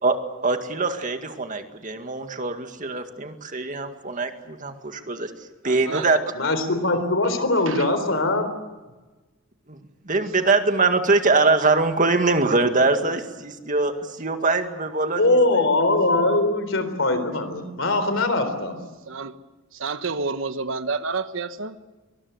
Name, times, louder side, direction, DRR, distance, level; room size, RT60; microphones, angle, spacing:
voice 1, 0.4-5.3 5.6-6.2 9.7-9.8 10.1-15.4, right 3 dB, 40° right, 7 dB, 2.0 m, -23 dB
voice 2, 5.6-6.1 7.7-7.9 19.1-19.3 19.7-21.8, right 4 dB, 70° right, 11 dB, 1.3 m, -29 dB
voice 3, 6.3-8.5 15.2-18.8, left 2 dB, 70° left, 10 dB, 3.9 m, -21 dB
23.5 x 20.5 x 8.1 m, 1.2 s
head